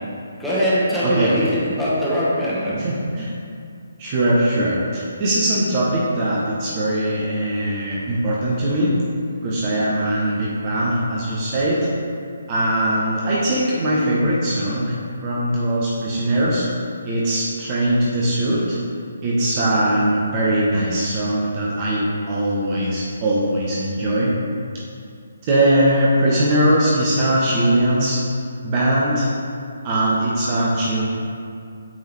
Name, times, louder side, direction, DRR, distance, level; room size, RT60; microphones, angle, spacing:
voice 1, 0.4-2.8, equal, ahead, -12 dB, 1.4 m, -21 dB
voice 2, 1.0-1.5 2.8-3.3 4.0-8.9 9.4-11.9 12.5-15.0 15.2-16.7 17.0-18.8 19.2-24.3 25.4-28.2 28.6-29.3 29.8-31.0, right 1 dB, 30° right, -6 dB, 1.0 m, -20 dB
8.6 x 3.7 x 3.2 m, 2.4 s
figure-of-eight pair, 140°, 0 cm